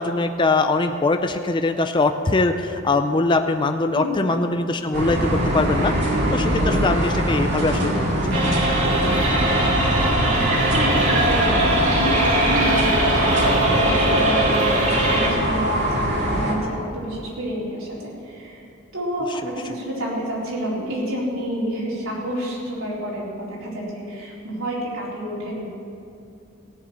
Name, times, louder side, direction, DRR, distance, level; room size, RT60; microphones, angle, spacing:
voice 1, 0.0-5.3 5.5-8.1, left 3 dB, 25° left, 7 dB, 0.5 m, -22 dB
voice 2, 3.9-4.3 10.2-18.6 18.9-25.7, equal, 85° right, -5 dB, 4.1 m, -29 dB
sound 1, 4.9-16.5, equal, 55° right, 2.2 m, -22 dB
sound 2, 8.3-15.3, right 1 dB, 35° right, 2.3 m, -21 dB
16.5 x 6.8 x 9.0 m, 2.6 s
head